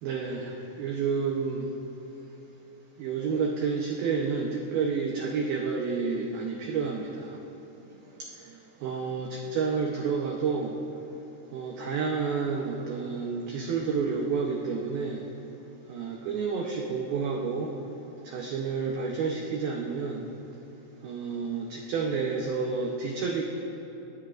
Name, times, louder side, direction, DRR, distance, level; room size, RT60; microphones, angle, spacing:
voice 1, 0.0-1.7 3.0-7.4 8.4-8.5 8.8-10.7 11.5-15.2 15.9-17.7 18.2-20.3 21.0-23.4, right 5 dB, 85° right, 0 dB, 2.1 m, -30 dB
22.5 x 18.0 x 2.5 m, 3.0 s
omnidirectional pair, 5.7 m